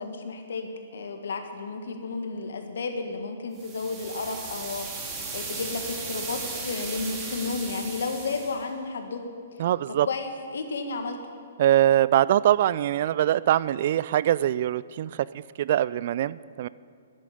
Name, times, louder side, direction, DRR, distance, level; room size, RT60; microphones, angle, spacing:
voice 1, 0.0-4.9 5.3-9.2 9.5-11.2, left 4 dB, 65° left, 5 dB, 1.7 m, -32 dB
sound 1, 3.6-8.6, right 4 dB, 20° right, 2.4 m, -36 dB
voice 2, 9.6-10.1 11.6-15.2 15.6-16.7, right 12 dB, 50° right, 19 dB, 0.3 m, -23 dB
10.5 x 8.9 x 9.9 m, 2.3 s
figure-of-eight pair, 125°, 0 cm